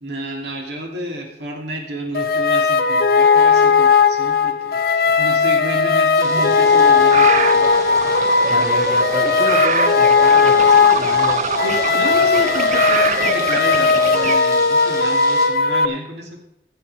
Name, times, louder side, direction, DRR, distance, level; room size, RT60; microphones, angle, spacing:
voice 1, 0.0-8.9 11.6-16.4, right 1 dB, 75° right, 1 dB, 2.7 m, -30 dB
sound 1, 2.1-15.8, left 5 dB, 55° left, 0.7 m, -16 dB
sound 2, 6.2-15.5, right 1 dB, 20° right, 2.2 m, -35 dB
sound 3, 6.4-14.4, right 5 dB, 40° right, 0.5 m, -25 dB
voice 2, 8.4-11.5, left 1 dB, ahead, -1 dB, 2.4 m, -28 dB
15.0 x 8.4 x 4.9 m, 0.77 s
head